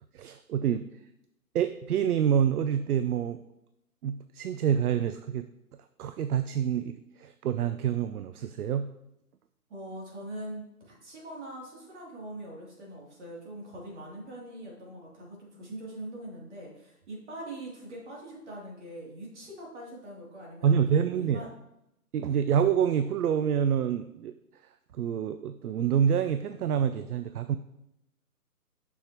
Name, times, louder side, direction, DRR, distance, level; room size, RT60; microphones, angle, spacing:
voice 1, 0.1-0.9 1.5-3.4 4.0-5.5 6.0-8.9 20.6-21.5 22.1-24.3 24.9-27.6, right 8 dB, 75° right, 11 dB, 0.6 m, -27 dB
voice 2, 9.7-21.5, right 1 dB, 45° right, -3 dB, 2.9 m, -42 dB
7.8 x 6.4 x 3.0 m, 0.85 s
hypercardioid pair, 155°, 46 cm